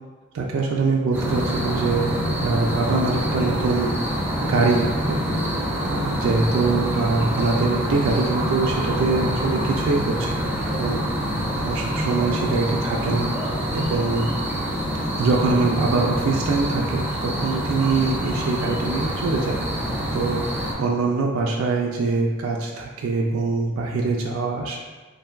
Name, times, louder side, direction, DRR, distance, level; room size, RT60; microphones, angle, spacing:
voice 1, 0.3-4.0 4.4-5.2 5.9-11.0 11.5-13.3 13.7-14.3 15.2-19.6 20.1-20.4 20.8-24.8, right 3 dB, 90° right, -1 dB, 0.3 m, -23 dB
sound 1, 1.1-20.7, equal, 10° right, 0.4 m, -26 dB
3.3 x 2.1 x 2.3 m, 1.3 s
head